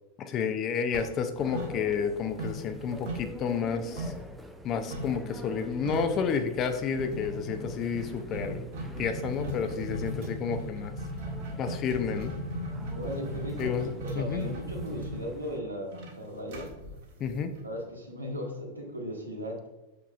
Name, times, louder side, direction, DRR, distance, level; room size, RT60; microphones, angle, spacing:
voice 1, 0.2-4.1 4.6-8.7 9.0-10.9 11.6-12.4 13.6-14.4 17.2-17.5, left 6 dB, 30° left, 8 dB, 0.6 m, -30 dB
sound 1, 0.9-2.1 2.4-4.3 4.9-5.2 5.5-5.6 5.8-6.2 7.0-17.8, equal, 55° right, 1.6 m, -37 dB
sound 2, 1.4-15.6, right 1 dB, 5° right, 0.6 m, -45 dB
voice 2, 12.9-16.7 17.6-19.6, equal, 85° right, -2 dB, 1.6 m, -37 dB
6.9 x 5.8 x 2.5 m, 1.0 s
figure-of-eight pair, 90°, 0 cm